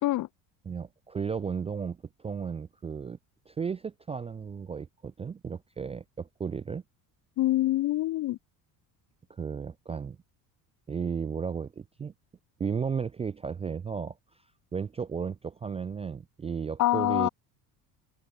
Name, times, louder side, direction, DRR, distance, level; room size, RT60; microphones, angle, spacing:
voice 1, 0.7-3.2 3.5-6.8 9.3-10.2 10.9-12.1 12.6-14.2 14.7-17.3, right 6 dB, 15° right, 0.3 m, -34 dB
voice 2, 7.4-8.4 16.8-17.3, left 16 dB, 50° left, 0.7 m, -25 dB
cardioid pair, 135°, 40 cm